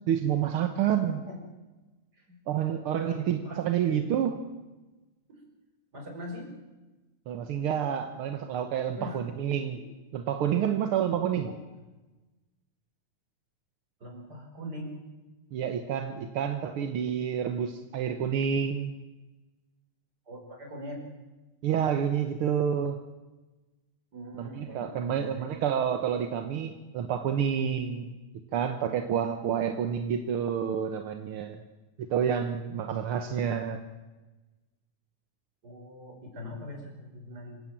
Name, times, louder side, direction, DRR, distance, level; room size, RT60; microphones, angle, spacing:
voice 1, 0.1-1.2 2.5-4.4 7.3-9.8 10.1-11.5 15.5-18.9 21.6-23.0 24.4-28.1 28.5-31.6 32.1-33.8, right 8 dB, 60° right, 7 dB, 1.6 m, -29 dB
voice 2, 1.1-1.4 2.2-2.4 2.7-4.1 5.3-5.4 5.9-6.5 9.0-9.3 9.7-9.8 11.3-11.5 14.0-15.0 20.3-21.1 24.1-25.5 35.6-37.6, equal, 30° right, 2 dB, 5.4 m, -42 dB
26.0 x 16.5 x 7.4 m, 1.1 s
omnidirectional pair, 3.5 m